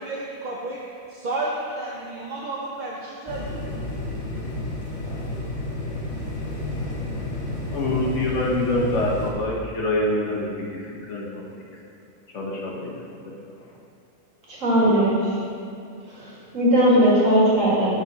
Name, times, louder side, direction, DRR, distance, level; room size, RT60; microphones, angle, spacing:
voice 1, 0.0-3.7, right 2 dB, 45° right, -3 dB, 0.6 m, -32 dB
sound 1, 3.3-9.3, left 2 dB, 25° left, 1.1 m, -31 dB
voice 2, 7.7-11.4 12.3-13.2 13.7-13.8, left 1 dB, 60° left, -3 dB, 1.4 m, -26 dB
voice 3, 14.6-15.2 16.2-16.3 16.5-17.9, equal, 65° right, -7 dB, 2.4 m, -18 dB
5.7 x 5.5 x 6.0 m, 2.5 s
omnidirectional pair, 1.4 m